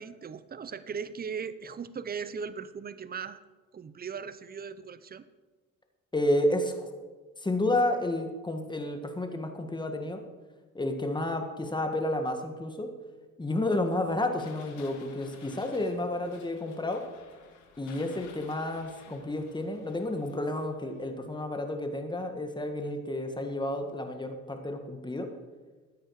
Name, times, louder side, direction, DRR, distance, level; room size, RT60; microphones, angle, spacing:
voice 1, 0.0-3.4 3.7-5.2, right 6 dB, 30° right, 14 dB, 0.7 m, -38 dB
voice 2, 6.1-6.9 7.4-10.2 10.7-12.9 13.4-17.0 17.8-25.3, left 1 dB, 15° left, 5 dB, 1.8 m, -31 dB
sound 1, 13.6-21.2, left 6 dB, 75° left, 1.8 m, -54 dB
14.0 x 9.3 x 4.9 m, 1.3 s
cardioid pair, 90°, 30 cm